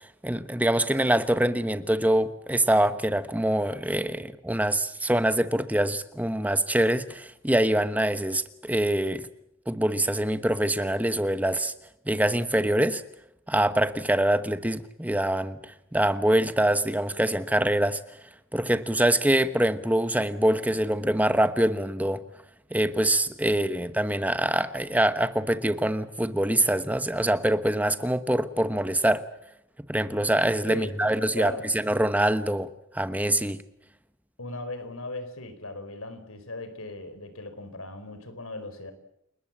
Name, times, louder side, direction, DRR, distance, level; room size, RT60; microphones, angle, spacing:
voice 1, 0.2-9.3 9.7-11.7 12.1-13.0 13.5-18.0 18.5-22.2 22.7-29.2 29.9-33.6, right 1 dB, 5° right, 11 dB, 1.1 m, -24 dB
voice 2, 30.7-31.7 34.4-38.9, left 2 dB, 85° left, 10 dB, 4.5 m, -38 dB
29.5 x 20.0 x 7.5 m, 0.78 s
head